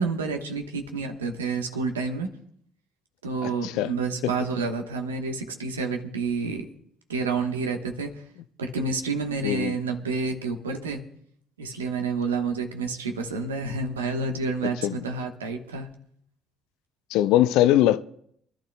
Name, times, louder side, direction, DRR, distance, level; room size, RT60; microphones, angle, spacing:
voice 1, 0.0-2.3 3.2-6.7 7.1-8.2 8.6-11.0 11.6-15.9, right 4 dB, 90° right, 1.1 m, -29 dB
voice 2, 3.4-3.9 9.4-9.7 14.8-14.9 17.1-18.0, left 13 dB, 70° left, 0.4 m, -21 dB
28.0 x 11.5 x 2.2 m
hypercardioid pair, 50°, 0 cm